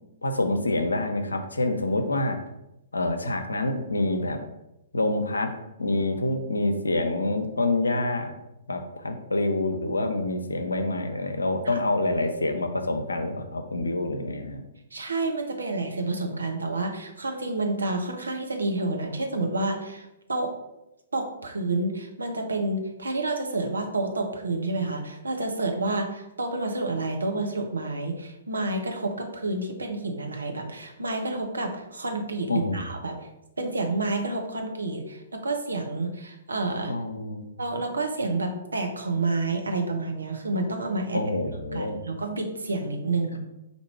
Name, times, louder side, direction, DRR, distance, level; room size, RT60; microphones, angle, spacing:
voice 1, 0.2-2.4 2.9-4.4 4.9-5.5 5.8-8.3 8.7-14.6 32.5-32.8 36.9-37.5 41.1-42.0, left 2 dB, 80° left, 6 dB, 0.6 m, -27 dB
voice 2, 14.9-20.5 21.1-33.3 33.6-36.9 37.6-41.2 41.7-43.4, right 2 dB, 80° right, 3 dB, 0.8 m, -29 dB
4.5 x 2.6 x 4.5 m, 0.90 s
figure-of-eight pair, 120°, 0 cm